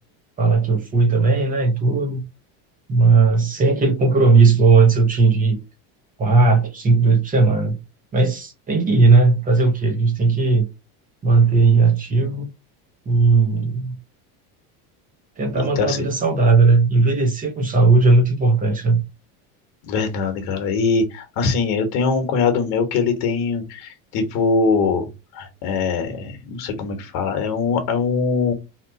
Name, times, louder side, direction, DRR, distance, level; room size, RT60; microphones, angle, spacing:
voice 1, 0.4-2.2 2.9-5.6 6.2-7.8 8.1-10.7 11.2-12.5 13.1-14.0 15.4-19.0, right 3 dB, 20° right, 0.6 m, -17 dB
voice 2, 15.5-16.0 19.8-25.1 25.3-28.5, left 4 dB, 60° left, 1.1 m, -22 dB
3.0 x 2.2 x 3.9 m
cardioid pair, 145°, 44 cm